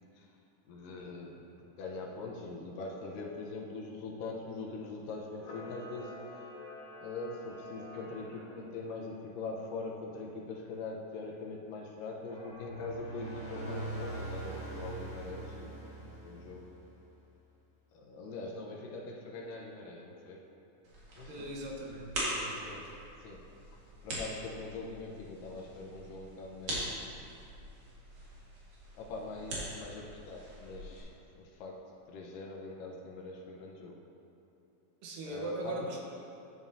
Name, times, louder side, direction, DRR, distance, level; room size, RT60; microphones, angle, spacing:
voice 1, 0.7-1.4 1.8-6.2 7.0-16.7 17.9-20.4 21.2-21.5 22.6-22.9 23.2-23.4 23.7-27.1 28.9-34.0 35.2-36.0, left 3 dB, 85° left, -1 dB, 2.5 m, -43 dB
Camera, 5.3-8.6 12.2-12.9 13.5-15.3, left 1 dB, 55° left, 2.8 m, -49 dB
sound 1, 12.4-17.0, right 2 dB, 35° left, 1.1 m, -42 dB
sound 2, 20.8-31.0, right 1 dB, 60° right, 3.0 m, -42 dB
voice 2, 21.3-22.8 35.0-36.0, right 1 dB, 80° right, -1 dB, 2.6 m, -40 dB
10.5 x 9.0 x 2.7 m, 2.9 s
omnidirectional pair, 3.9 m